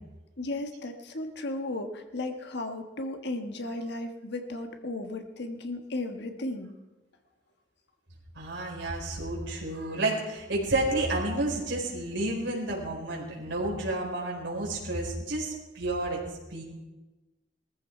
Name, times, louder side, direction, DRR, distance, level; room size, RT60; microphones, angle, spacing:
voice 1, 0.4-6.7, left 2 dB, 65° left, 5 dB, 1.6 m, -35 dB
voice 2, 8.4-16.2 16.5-16.6, right 2 dB, 75° right, -2 dB, 4.3 m, -30 dB
19.0 x 14.5 x 4.5 m, 1.1 s
head